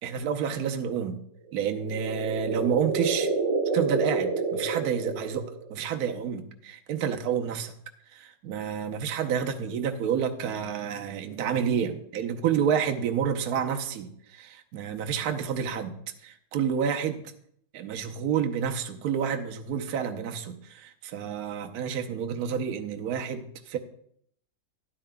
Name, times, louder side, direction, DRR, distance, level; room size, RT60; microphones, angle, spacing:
voice 1, 0.0-1.2 1.5-3.3 3.7-7.7 8.1-15.9 16.2-17.2 17.7-23.8, right 7 dB, 65° right, 4 dB, 1.1 m, -29 dB
sound 1, 1.5-5.8, right 4 dB, 40° right, 4.8 m, -29 dB
12.5 x 11.0 x 2.2 m, 0.67 s
omnidirectional pair, 1.9 m